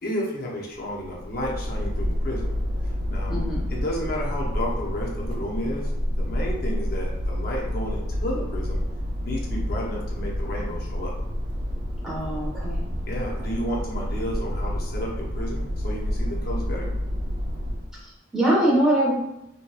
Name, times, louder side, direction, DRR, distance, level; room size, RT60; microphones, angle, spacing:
voice 1, 0.0-2.5 2.8-3.4 3.7-5.9 6.2-8.8 9.2-11.1 13.1-16.9, equal, 50° left, -2 dB, 0.5 m, -32 dB
sound 1, 0.8-18.0, equal, 45° right, 0.3 m, -29 dB
voice 2, 3.3-3.7 12.0-12.8 18.0-19.1, right 1 dB, 5° right, -6 dB, 0.7 m, -23 dB
2.7 x 2.2 x 2.3 m, 0.88 s
head